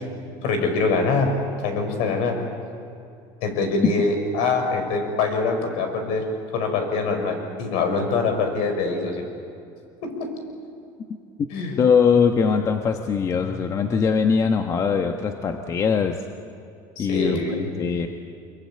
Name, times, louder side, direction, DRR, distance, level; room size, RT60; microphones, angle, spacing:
voice 1, 0.4-1.3 1.6-2.4 3.4-6.2 6.5-9.2 10.0-10.3 11.5-11.8 17.0-17.7, left 4 dB, 70° left, 5 dB, 5.5 m, -24 dB
voice 2, 11.8-16.2 17.0-17.4 17.8-18.1, left 6 dB, 30° left, 5 dB, 1.2 m, -21 dB
25.5 x 23.0 x 8.8 m, 2.6 s
cardioid pair, 135°, 11 cm